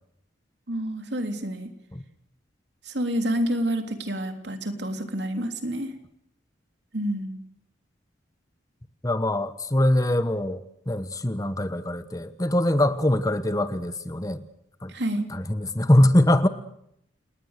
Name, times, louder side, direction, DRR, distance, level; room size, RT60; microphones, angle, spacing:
voice 1, 0.7-1.7 2.8-5.9 6.9-7.4 14.9-15.3, right 1 dB, 65° right, 3.4 m, -28 dB
voice 2, 9.0-14.4 14.8-14.9 15.3-16.5, left 1 dB, 20° left, 1.2 m, -23 dB
29.5 x 19.5 x 6.7 m
head